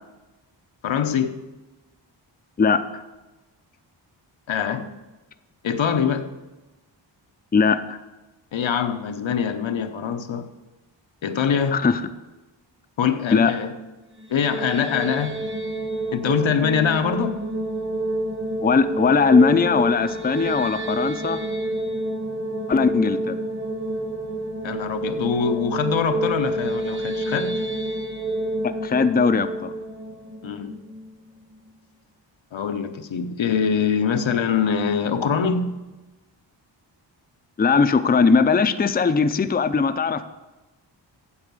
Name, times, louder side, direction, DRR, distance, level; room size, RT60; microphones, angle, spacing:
voice 1, 0.8-1.4 4.5-4.9 5.6-6.3 8.5-10.5 11.2-11.8 13.0-13.7 14.3-15.4 16.1-17.4 24.6-27.6 30.4-30.8 32.5-35.9, left 7 dB, 85° left, 0.9 m, -24 dB
voice 2, 2.6-3.0 7.5-8.0 11.7-12.0 13.3-13.5 18.6-21.4 22.7-23.4 28.6-29.7 37.6-40.2, left 5 dB, 20° left, 0.4 m, -19 dB
sound 1, 14.2-31.3, right 1 dB, 25° right, 1.1 m, -29 dB
8.6 x 7.5 x 6.1 m
wide cardioid pair, 100°, 45 cm